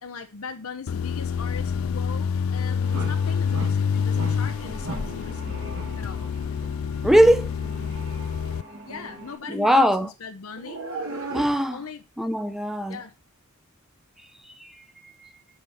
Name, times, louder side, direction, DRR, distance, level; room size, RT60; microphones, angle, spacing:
voice 1, 0.0-5.7 6.0-6.3 8.6-10.8 11.7-12.0 12.9-13.1, left 5 dB, 90° left, 0.8 m, -39 dB
sound 1, 0.9-8.6, left 6 dB, 75° left, 0.4 m, -27 dB
sound 2, 2.8-9.4, equal, 55° right, 2.6 m, -44 dB
sound 3, 2.9-3.2 3.5-3.8 4.1-4.5 4.8-5.2 5.7-6.0 10.5-11.6, right 2 dB, 90° right, 2.5 m, -34 dB
voice 2, 7.0-7.5 9.5-10.1 11.3-11.8 12.2-13.0 14.6-14.7, equal, ahead, 0.6 m, -19 dB
5.6 x 5.1 x 5.7 m
head